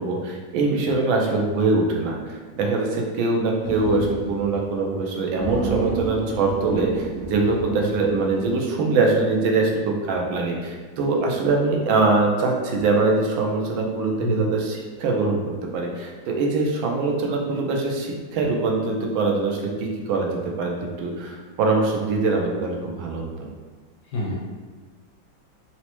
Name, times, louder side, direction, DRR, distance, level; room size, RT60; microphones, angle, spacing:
voice 1, 0.0-15.4 15.7-23.5, right 3 dB, 85° right, 0 dB, 1.4 m, -23 dB
sound 1, 3.6-4.6 4.9-5.0 5.3-8.7, right 3 dB, 70° right, 0.8 m, -31 dB
voice 2, 14.2-14.6 24.1-24.3, left 1 dB, 75° left, -2 dB, 1.0 m, -26 dB
4.1 x 2.0 x 2.9 m, 1.4 s
omnidirectional pair, 2.1 m